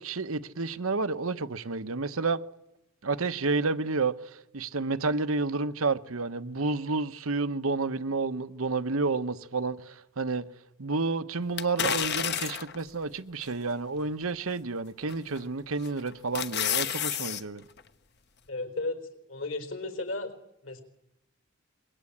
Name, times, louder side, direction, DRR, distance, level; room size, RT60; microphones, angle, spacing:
voice 1, 0.0-2.4 3.0-10.4 10.8-17.6, right 3 dB, 80° right, 1.1 m, -30 dB
sound 1, 11.6-12.8 13.4-13.5 15.1-15.4 15.9-17.4 17.8-17.9, left 9 dB, 50° left, 1.1 m, -30 dB
voice 2, 18.5-19.0 19.3-20.3 20.6-20.8, left 2 dB, 65° left, 4.2 m, -34 dB
27.0 x 22.5 x 8.7 m
head